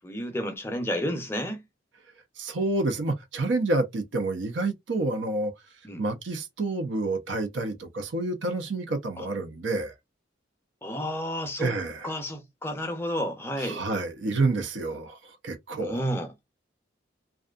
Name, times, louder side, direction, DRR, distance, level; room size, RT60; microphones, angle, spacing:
voice 1, 0.0-1.6 5.8-6.0 9.2-9.3 10.8-11.7 12.0-13.8 15.8-16.3, equal, 10° left, 0.5 m, -31 dB
voice 2, 2.4-5.5 6.0-9.9 11.6-12.1 13.6-15.2 15.4-16.0, right 2 dB, 75° right, 0.6 m, -28 dB
2.5 x 2.3 x 2.3 m
head